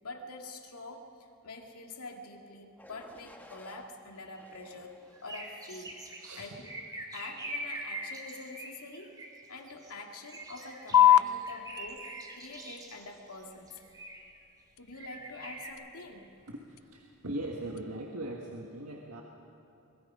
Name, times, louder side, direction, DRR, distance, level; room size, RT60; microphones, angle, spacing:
voice 1, 0.0-4.9 5.2-6.0 6.4-6.7 7.1-9.2 9.5-12.1 12.4-13.8 14.8-16.4, left 2 dB, 85° left, 2 dB, 2.3 m, -45 dB
sound 1, 2.8-3.9 4.4-5.4 6.0-6.4, left 1 dB, 10° left, 1.3 m, -55 dB
sound 2, 4.3-4.7 5.1-9.9 10.2-13.0 13.7-14.4 14.9-15.7, right 2 dB, 15° right, 2.1 m, -43 dB
voice 2, 6.2-6.5 16.5-19.2, right 1 dB, 85° right, 0 dB, 1.6 m, -40 dB
sound 3, 10.9-17.9, left 11 dB, 70° left, 0.5 m, -30 dB
24.0 x 19.5 x 5.5 m, 2.9 s
head